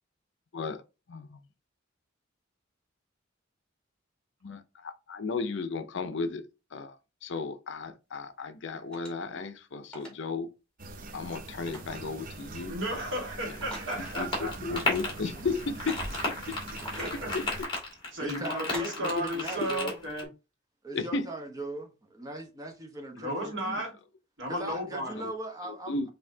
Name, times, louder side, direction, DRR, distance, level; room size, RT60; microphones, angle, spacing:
voice 1, 1.1-1.4 4.4-7.0 7.2-10.5 11.1-12.7 13.5-13.6 14.2-15.9 17.3-17.4 20.9-21.3 25.2-25.3 25.6-26.1, left 4 dB, 65° left, 0.6 m, -34 dB
sound 1, 8.9-9.3 9.8-10.2 11.7-12.0 13.6-14.3 14.6-14.7 15.8-16.2 16.8-17.3 18.7-19.3, right 1 dB, 5° left, 2.3 m, -42 dB
sound 2, 10.8-17.7, right 2 dB, 45° right, 0.6 m, -42 dB
voice 2, 12.6-14.8 16.9-17.3 18.1-20.3 23.1-23.9 24.4-25.2, equal, 65° right, 1.7 m, -34 dB
sound 3, 13.9-20.2, left 2 dB, 25° left, 1.7 m, -35 dB
voice 3, 18.2-20.0 20.8-23.8 24.5-26.1, right 1 dB, 20° right, 0.9 m, -39 dB
5.4 x 2.8 x 2.7 m
head